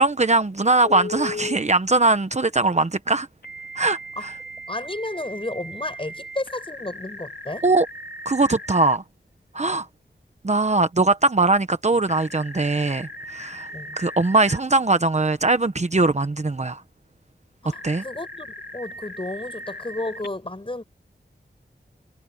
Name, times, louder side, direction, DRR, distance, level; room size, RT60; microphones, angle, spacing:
voice 1, 0.0-3.3 3.7-4.3 7.6-7.9 8.2-9.0 9.5-9.9 10.4-13.7 14.0-16.8 17.8-18.0, right 3 dB, 40° right, 1.0 m, -21 dB
Telephone, 0.8-1.6 3.4-9.0 12.1-14.6 17.7-20.3, left 1 dB, 60° left, 3.8 m, -37 dB
voice 2, 4.2-7.7 13.7-14.0 17.6-20.8, left 2 dB, 30° left, 7.9 m, -32 dB
wide cardioid pair, 85°, 18 cm